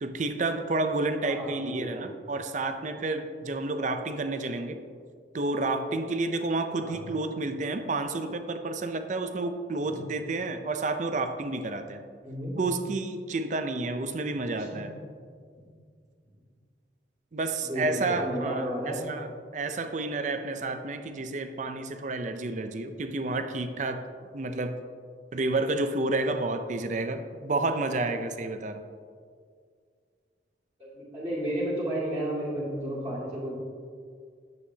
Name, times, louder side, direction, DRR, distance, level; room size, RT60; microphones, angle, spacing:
voice 1, 0.0-4.8 5.3-12.0 12.6-14.9 17.3-19.3 19.5-24.0 24.3-24.8 25.3-28.8, right 2 dB, 40° right, 8 dB, 0.4 m, -30 dB
voice 2, 1.2-2.0 6.8-7.1 9.8-10.0 12.2-12.5 14.6-14.8 17.6-19.0 30.8-33.6, right 1 dB, 15° right, -11 dB, 2.0 m, -33 dB
9.9 x 8.0 x 2.8 m, 2.1 s
head